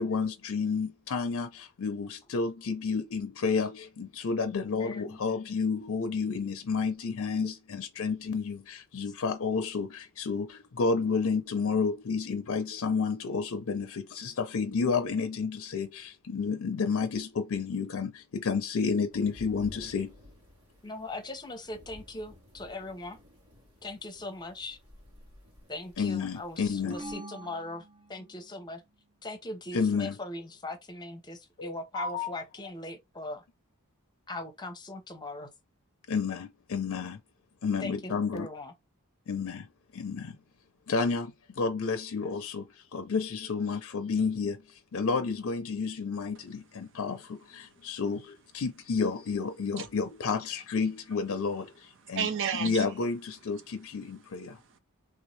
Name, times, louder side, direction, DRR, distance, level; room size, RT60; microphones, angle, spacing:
voice 1, 0.0-20.1 26.0-27.0 29.7-30.2 31.6-32.3 36.1-37.2 37.6-38.5 39.3-39.7 39.9-40.4 40.9-52.3 52.6-54.6, left 5 dB, 65° left, 0.5 m, -31 dB
voice 2, 4.5-5.2 20.8-23.2 23.8-24.8 25.7-28.8 29.2-33.4 34.3-35.5 37.8-38.7, left 2 dB, 20° left, 0.8 m, -40 dB
sound 1, 19.1-27.1, left 2 dB, 85° right, 2.1 m, -53 dB
sound 2, 26.9-28.6, right 2 dB, 25° right, 0.8 m, -44 dB
voice 3, 47.6-48.0 49.8-49.9 52.0-52.9 54.0-54.8, right 7 dB, 60° right, 0.6 m, -35 dB
3.4 x 2.7 x 3.1 m
head